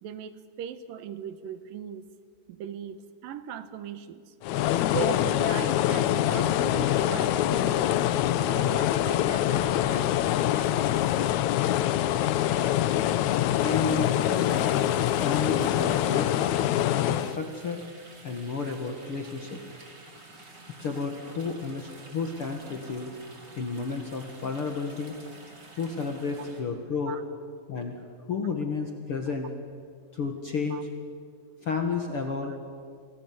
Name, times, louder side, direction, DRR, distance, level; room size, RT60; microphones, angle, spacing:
voice 1, 0.0-2.1 2.5-4.3 4.9-8.0 8.4-10.5 18.6-18.7 27.1-27.2 30.7-30.8 32.4-32.6, right 8 dB, 75° right, 12 dB, 2.9 m, -38 dB
sound 1, 4.4-17.4, left 12 dB, 75° left, 1.8 m, -25 dB
sound 2, 10.5-26.6, right 2 dB, 30° right, 3.9 m, -50 dB
voice 2, 13.6-14.7 15.2-16.4 16.9-17.8 18.2-19.6 20.8-23.1 23.6-25.1 25.8-27.1 27.7-28.0 28.3-29.5 30.1-30.8 31.6-32.5, left 4 dB, 45° left, 4 dB, 2.2 m, -31 dB
28.0 x 20.0 x 9.6 m, 2.1 s
omnidirectional pair, 4.1 m